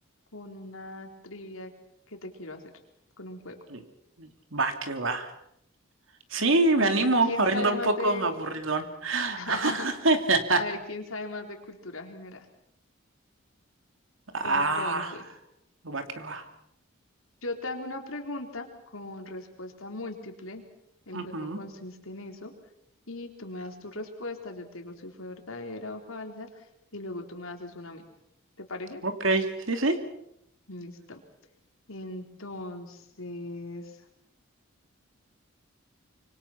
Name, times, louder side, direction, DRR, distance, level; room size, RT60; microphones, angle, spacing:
voice 1, 0.3-1.7 2.1-2.6 3.2-3.6 6.8-8.3 9.3-9.9 10.6-12.5 14.4-15.2 17.4-20.6 21.1-22.5 23.1-26.7 26.9-28.0 28.6-29.0 30.7-31.2 31.9-34.0, left 2 dB, 80° left, 4 dB, 3.9 m, -38 dB
voice 2, 4.2-5.3 6.3-10.6 14.3-15.1 15.8-16.5 21.1-21.6 29.0-30.0, right 2 dB, 65° right, 7 dB, 2.8 m, -26 dB
26.0 x 24.5 x 5.9 m, 0.78 s
head